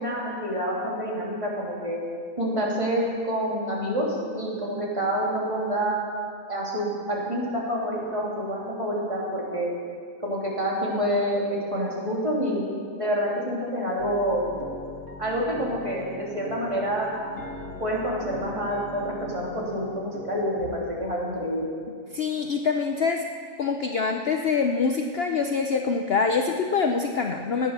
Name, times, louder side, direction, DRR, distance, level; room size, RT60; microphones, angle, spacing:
voice 1, 0.0-2.0 2.4-6.0 6.5-9.7 10.2-11.4 11.7-12.6 13.0-14.4 15.2-17.1 17.8-21.7, equal, 20° right, -5 dB, 3.3 m, -27 dB
sound 1, 14.0-20.8, left 2 dB, 85° left, 2.1 m, -40 dB
voice 2, 22.1-23.3 23.6-27.7, left 5 dB, 55° left, 4 dB, 0.8 m, -25 dB
17.0 x 9.9 x 6.7 m, 2.1 s
omnidirectional pair, 1.5 m